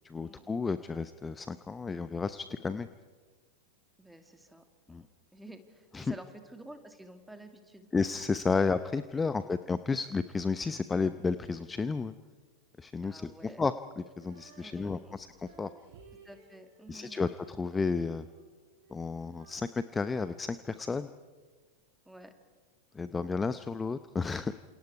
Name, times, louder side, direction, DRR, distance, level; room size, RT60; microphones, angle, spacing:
voice 1, 0.0-2.9 4.9-5.0 5.9-6.1 7.9-12.1 12.8-13.3 13.6-13.7 14.2-15.7 16.9-18.3 18.9-21.1 22.9-24.5, left 4 dB, 15° left, 13 dB, 0.8 m, -32 dB
voice 2, 4.0-5.1 5.3-7.9 13.0-13.6 14.6-15.2 16.2-17.3 22.1-22.3, right 1 dB, 5° right, 7 dB, 2.4 m, -50 dB
Female singing, 14.1-21.2 21.8-21.9, right 5 dB, 55° right, 6.1 m, -59 dB
29.5 x 28.0 x 4.8 m, 1.4 s
figure-of-eight pair, 90°, 0 cm